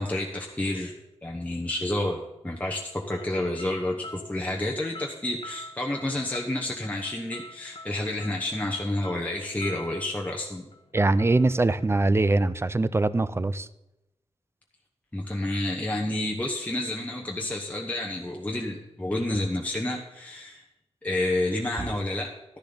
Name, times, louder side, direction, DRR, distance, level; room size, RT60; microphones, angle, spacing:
voice 1, 0.0-10.7 15.1-20.6 21.0-22.6, left 1 dB, 10° left, 0 dB, 1.0 m, -30 dB
sound 1, 3.2-13.0, left 2 dB, 50° left, 1.0 m, -47 dB
voice 2, 10.9-13.7 21.8-21.9, right 2 dB, 20° right, 16 dB, 0.4 m, -23 dB
12.0 x 10.5 x 3.9 m, 0.94 s
wide cardioid pair, 100°, 11 cm